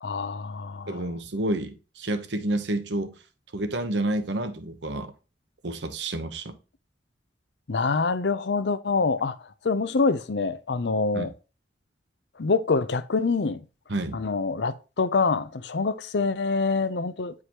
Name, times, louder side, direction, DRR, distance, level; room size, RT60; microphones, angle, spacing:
voice 1, 0.0-1.1 7.7-9.4 9.6-11.3 12.4-13.6 14.1-17.3, left 4 dB, 75° left, 0.6 m, -25 dB
voice 2, 0.9-3.1 3.5-5.1 5.6-6.6 11.1-11.3 13.9-14.2, right 1 dB, 75° right, 0.9 m, -29 dB
9.7 x 4.8 x 2.9 m
head